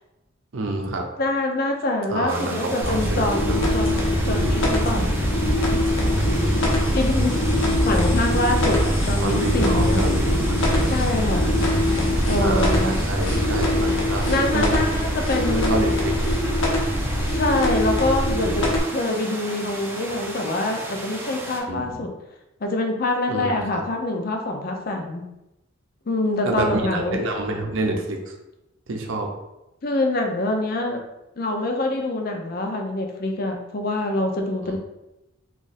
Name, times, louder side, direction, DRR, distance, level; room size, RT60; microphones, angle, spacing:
voice 1, 0.5-1.0 2.1-3.6 9.2-10.9 12.4-14.9 15.5-16.1 21.7-21.9 23.3-23.8 26.4-28.2 28.9-29.3 34.7-34.8, right 2 dB, 75° right, 2 dB, 0.6 m, -27 dB
voice 2, 1.2-5.2 6.9-7.3 7.8-10.1 10.8-11.5 12.2-13.0 14.3-15.8 17.3-18.7 18.9-22.1 22.6-25.2 26.1-27.2 29.8-31.0 31.4-34.8, left 2 dB, 45° left, 3 dB, 0.5 m, -25 dB
sound 1, 2.3-21.6, right 1 dB, 10° right, 0.4 m, -35 dB
sound 2, 2.8-18.8, left 1 dB, 80° left, 0.9 m, -22 dB
3.0 x 2.5 x 4.0 m, 0.93 s
head